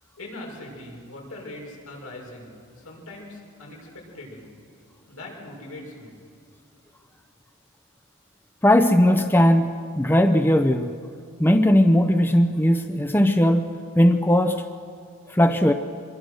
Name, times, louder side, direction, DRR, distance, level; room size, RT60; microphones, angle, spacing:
voice 1, 0.2-4.5 5.1-6.2, left 1 dB, 85° left, -1 dB, 6.1 m, -41 dB
voice 2, 8.6-10.9 11.4-14.6 15.3-15.7, equal, 10° left, 6 dB, 0.7 m, -18 dB
25.5 x 22.0 x 6.4 m, 2.4 s
head